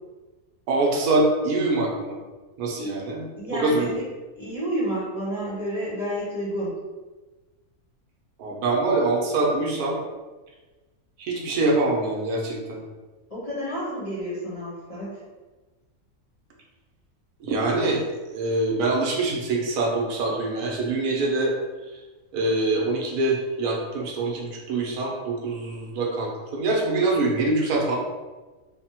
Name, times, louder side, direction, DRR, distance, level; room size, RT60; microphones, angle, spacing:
voice 1, 0.7-2.2 2.6-3.9 8.4-10.0 11.2-12.8 17.4-21.5 22.3-28.0, right 2 dB, 80° right, -1 dB, 1.1 m, -24 dB
voice 2, 3.4-4.0 4.4-6.8 13.3-15.2, equal, 35° left, -10 dB, 0.7 m, -30 dB
3.4 x 2.1 x 2.8 m, 1.2 s
omnidirectional pair, 1.6 m